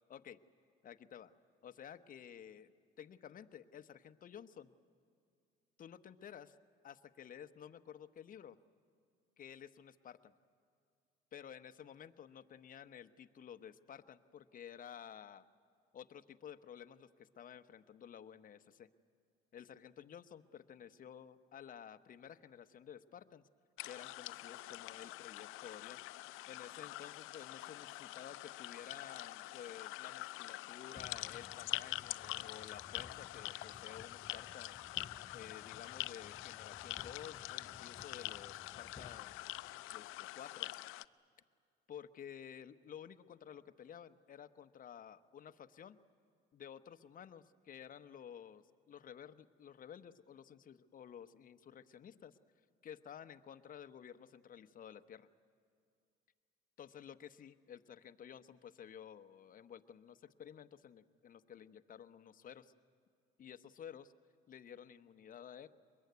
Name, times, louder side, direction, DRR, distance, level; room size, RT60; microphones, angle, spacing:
voice 1, 0.1-0.4 0.8-1.3 1.6-2.7 3.0-4.7 5.8-6.5 6.8-8.6 9.4-10.3 11.3-15.4 15.9-18.9 19.5-23.5 23.8-26.0 26.5-39.4 39.9-40.7 41.9-46.0 46.5-52.4 52.8-55.3 56.8-62.7 63.4-64.1 64.5-65.7, left 8 dB, 40° left, 10 dB, 1.0 m, -53 dB
sound 1, 23.8-41.0, left 18 dB, 80° left, 0.6 m, -45 dB
sound 2, 31.0-40.2, left 4 dB, 20° left, 0.7 m, -59 dB
23.0 x 21.5 x 9.5 m, 2.3 s
cardioid pair, 110°, 21 cm